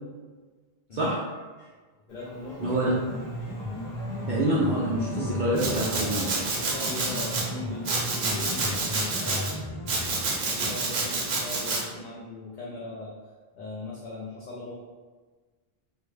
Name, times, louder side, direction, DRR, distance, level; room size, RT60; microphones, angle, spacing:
Race car auto racing / Accelerating revving vroom, 2.1-9.3, left 1 dB, 80° left, 1.1 m, -41 dB
voice 1, 2.1-2.7 3.4-3.6 5.7-10.0 10.4-13.1 13.5-14.8, left 3 dB, 55° left, -5 dB, 0.6 m, -39 dB
Piano, 2.5-10.5, left 1 dB, 15° left, 0.4 m, -36 dB
voice 2, 2.6-3.0 4.3-6.3, right 1 dB, 60° right, -5 dB, 0.6 m, -26 dB
Domestic sounds home sounds, 5.6-7.4 7.8-9.5 9.9-11.8, right 3 dB, 90° right, 0.9 m, -29 dB
3.4 x 2.2 x 3.2 m, 1.4 s
omnidirectional pair, 1.0 m